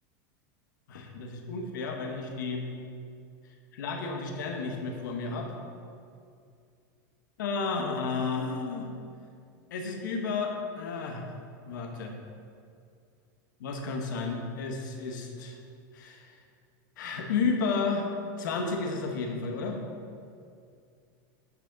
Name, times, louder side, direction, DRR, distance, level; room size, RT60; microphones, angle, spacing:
voice 1, 0.9-2.7 3.7-5.5 7.4-8.9 9.7-11.3 11.6-12.1 13.6-15.6 15.9-16.3 17.0-18.1 18.4-19.8, left 4 dB, 85° left, 3 dB, 1.1 m, -32 dB
9.7 x 4.9 x 3.9 m, 2.3 s
supercardioid pair, 120°, 10 cm